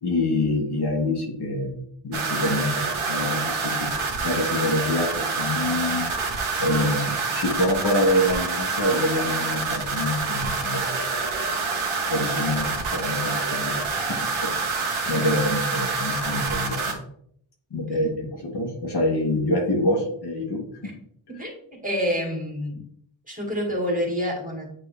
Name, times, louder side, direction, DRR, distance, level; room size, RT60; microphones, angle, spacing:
voice 1, 0.0-1.8 2.0-3.9 4.2-6.1 6.6-11.1 12.1-14.6 15.1-17.0 17.7-20.6, left 1 dB, 55° left, 0 dB, 1.3 m, -26 dB
Scary Static Noise, 2.1-16.9, right 4 dB, 90° right, 1.4 m, -27 dB
voice 2, 17.7-18.1 21.4-21.5 21.8-22.8 23.3-24.7, equal, 15° right, -2 dB, 2.2 m, -28 dB
8.8 x 3.7 x 3.4 m, 0.66 s
wide cardioid pair, 130°, 48 cm